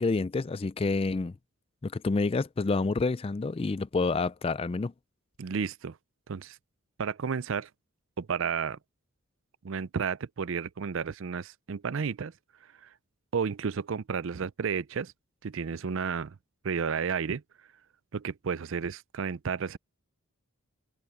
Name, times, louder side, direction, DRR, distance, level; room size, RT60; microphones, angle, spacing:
voice 1, 0.0-1.3 1.8-4.9, left 3 dB, 25° left, 0.3 m, -28 dB
voice 2, 5.4-6.0 6.3-6.6 7.0-7.7 8.2-8.8 9.6-12.3 13.3-15.1 15.4-16.4 16.6-17.4 18.1-19.8, right 6 dB, 60° right, 0.5 m, -32 dB
open air
head